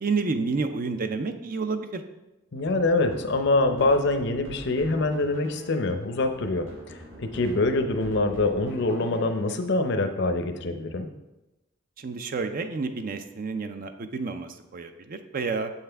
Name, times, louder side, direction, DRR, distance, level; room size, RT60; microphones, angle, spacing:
voice 1, 0.0-2.0 12.0-15.7, right 4 dB, 45° right, 8 dB, 0.4 m, -30 dB
voice 2, 2.5-11.1, left 2 dB, 60° left, 7 dB, 0.6 m, -25 dB
sound 1, 2.6-9.7, equal, 65° right, 1.9 m, -45 dB
7.4 x 5.7 x 3.4 m, 0.98 s
head